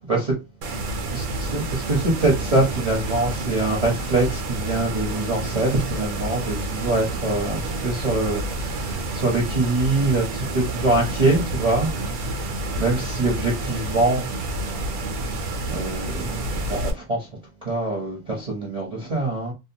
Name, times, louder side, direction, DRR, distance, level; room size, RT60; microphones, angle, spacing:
sound 1, 0.6-16.9, right 2 dB, 80° right, 1.1 m, -29 dB
voice 1, 1.1-11.9 12.2-12.5 12.8-14.2 15.7-17.3 17.6-19.5, right 2 dB, 35° right, 0.6 m, -24 dB
2.7 x 2.2 x 2.7 m
omnidirectional pair, 1.5 m